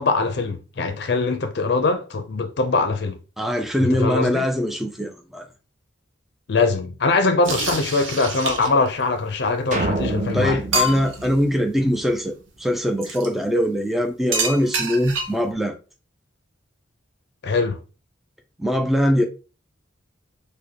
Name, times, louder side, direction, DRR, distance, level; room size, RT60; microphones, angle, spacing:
voice 1, 0.0-3.2 3.8-4.4 6.5-10.6 17.4-17.8, left 3 dB, 55° left, 0.5 m, -22 dB
voice 2, 3.4-5.5 10.3-15.8 18.6-19.2, equal, ahead, 0.3 m, -22 dB
sound 1, 7.4-8.9 9.8-9.9 10.3-10.4 10.7-11.3 13.0-13.3 14.3-15.5, right 1 dB, 80° right, 0.8 m, -26 dB
sound 2, 9.7-12.2, right 3 dB, 40° right, 0.6 m, -28 dB
5.0 x 2.1 x 2.8 m
head